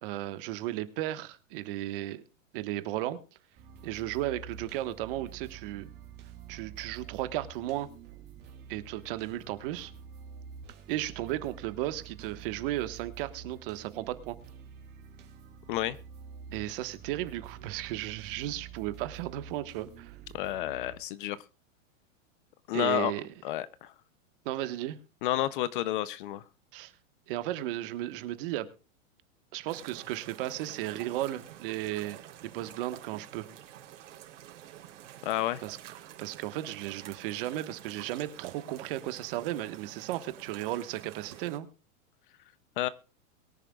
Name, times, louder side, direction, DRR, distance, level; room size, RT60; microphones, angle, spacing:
voice 1, 0.0-2.2 2.5-3.2 3.8-5.9 6.5-7.9 8.7-9.9 10.9-14.4 16.5-20.2 22.7-23.3 24.4-25.0 26.7-26.9 27.3-28.7 29.5-33.5 35.6-35.8 36.2-41.7, right 14 dB, 40° right, 11 dB, 1.4 m, -35 dB
sound 1, 3.6-21.0, right 8 dB, 25° right, 2.5 m, -48 dB
voice 2, 20.3-21.4 22.7-23.1 23.4-23.9 25.2-26.4 35.2-35.6 42.8-42.9, left 14 dB, 40° left, 17 dB, 0.6 m, -30 dB
sound 2, 29.7-41.6, right 12 dB, 60° right, 3.5 m, -49 dB
22.5 x 10.0 x 2.3 m, 0.34 s
supercardioid pair, 155°, 40 cm